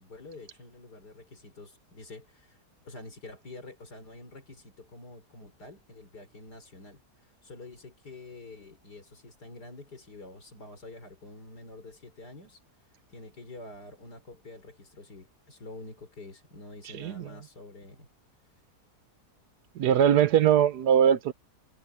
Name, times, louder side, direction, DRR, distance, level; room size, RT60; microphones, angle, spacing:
voice 1, 0.0-2.6 2.9-7.0 7.4-12.6 13.1-18.1, left 2 dB, 85° left, 5.5 m, -47 dB
voice 2, 16.9-17.3 19.7-21.3, right 9 dB, 80° right, 1.4 m, -21 dB
omnidirectional pair, 1.7 m